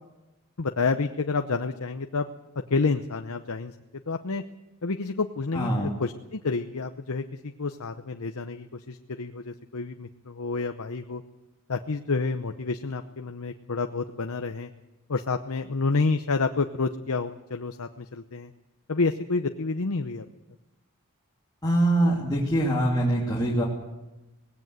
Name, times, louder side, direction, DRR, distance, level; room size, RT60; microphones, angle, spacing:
voice 1, 0.6-2.3 2.7-3.7 4.1-4.4 4.8-11.2 11.7-14.7 15.1-18.5 18.9-20.3, left 4 dB, 75° left, 7 dB, 0.8 m, -29 dB
voice 2, 5.5-5.9 21.6-23.6, right 1 dB, 20° left, -5 dB, 2.7 m, -23 dB
19.0 x 17.0 x 8.1 m, 1.0 s
head